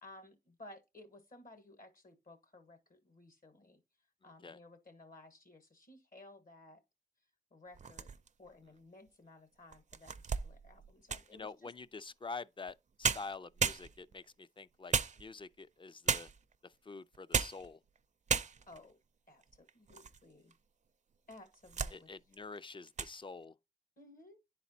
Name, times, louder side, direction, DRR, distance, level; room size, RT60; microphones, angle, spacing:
voice 1, 0.0-3.8 4.2-6.8 7.5-8.1 8.4-10.1 10.4-11.7 18.7-19.0 19.3-20.5 21.3-22.1 24.0-24.4, left 2 dB, 65° left, 1.4 m, -57 dB
sound 1, 7.7-8.5 9.1-9.2 9.7-11.4 12.7-12.8 13.0-14.2 14.9-15.6 16.1-16.5 17.1-17.7 18.0-18.1 18.3-18.8 19.4-20.2 20.5-20.6 21.3-22.0 22.3-22.6 22.9-23.2, right 6 dB, 50° right, 0.4 m, -35 dB
voice 2, 11.3-16.3 16.6-17.8 21.9-23.5, left 4 dB, 35° left, 0.3 m, -47 dB
9.9 x 4.1 x 2.7 m
cardioid pair, 50°, 16 cm